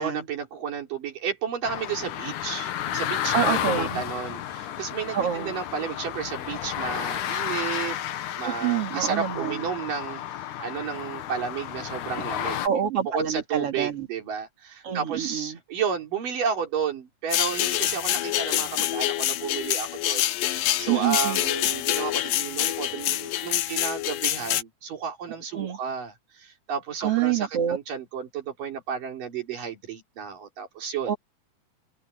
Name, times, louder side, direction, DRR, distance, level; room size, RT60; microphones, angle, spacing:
voice 1, 0.0-8.0 8.4-12.7 13.1-31.2, right 7 dB, 85° right, 5.4 m, -32 dB
sound 1, 1.6-12.7, left 11 dB, 70° left, 2.5 m, -32 dB
voice 2, 3.3-4.0 5.1-5.6 8.4-9.7 12.6-14.1 14.8-15.6 20.9-21.4 25.5-25.8 27.0-27.8 31.1-31.2, right 9 dB, 50° right, 3.3 m, -26 dB
sound 2, 17.3-24.6, left 14 dB, 90° left, 2.6 m, -26 dB
omnidirectional pair, 3.7 m